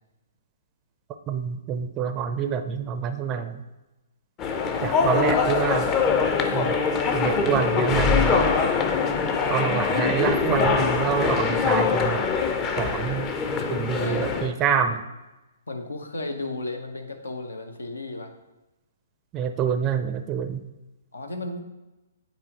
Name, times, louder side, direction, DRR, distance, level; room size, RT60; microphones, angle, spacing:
voice 1, 1.3-3.6 4.8-6.0 6.5-6.8 7.1-8.4 9.5-12.3 12.8-13.3 13.7-15.0 19.3-20.7, right 7 dB, 25° right, 9 dB, 0.4 m, -26 dB
sound 1, 4.4-14.5, left 5 dB, 25° left, 0.5 m, -23 dB
voice 2, 15.7-18.3 21.1-21.6, left 2 dB, 90° left, 5 dB, 0.8 m, -33 dB
8.4 x 4.3 x 2.9 m, 1.0 s
hypercardioid pair, 130°, 0 cm